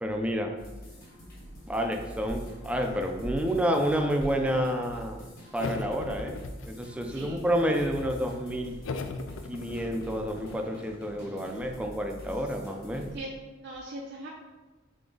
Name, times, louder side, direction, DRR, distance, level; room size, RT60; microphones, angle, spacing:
voice 1, 0.0-0.5 1.7-5.3 5.5-8.7 9.5-13.1, equal, 5° right, 3 dB, 0.4 m, -29 dB
sound 1, 0.6-13.2, equal, 50° left, 1.4 m, -47 dB
sound 2, 2.3-2.5 3.2-3.5 4.1-4.4 6.1-6.4 8.0-8.5, equal, 30° left, 0.9 m, -40 dB
sound 3, 5.6-7.1 7.4-8.2 8.8-12.1, left 3 dB, 70° left, 0.3 m, -40 dB
voice 2, 13.6-14.3, right 1 dB, 60° right, -3 dB, 0.6 m, -39 dB
3.8 x 3.4 x 3.8 m, 1.2 s
head